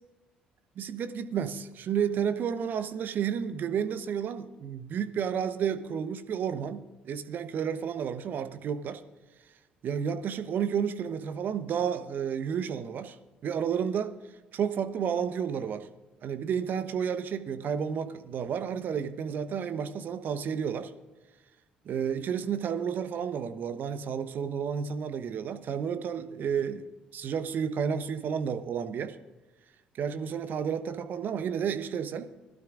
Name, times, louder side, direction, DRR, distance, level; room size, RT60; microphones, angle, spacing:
voice 1, 0.8-9.0 9.8-13.2 13.4-14.1 14.5-15.9 16.2-20.9 21.8-29.1 30.0-32.3, right 7 dB, 50° right, 10 dB, 1.0 m, -31 dB
20.5 x 12.0 x 2.5 m, 1.2 s
figure-of-eight pair, 50°, 4 cm